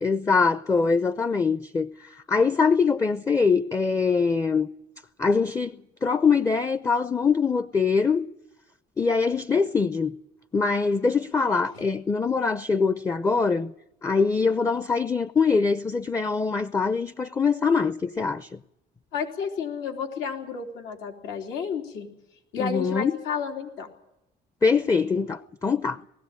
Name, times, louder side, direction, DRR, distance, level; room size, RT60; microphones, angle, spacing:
voice 1, 0.0-4.7 5.2-8.3 9.0-10.1 10.5-13.7 14.0-18.6 22.6-23.1 24.6-26.0, left 5 dB, 15° left, 0.6 m, -23 dB
voice 2, 19.1-22.1 22.5-23.9, left 6 dB, 85° left, 3.5 m, -31 dB
20.0 x 15.5 x 9.0 m
cardioid pair, 105°, 19 cm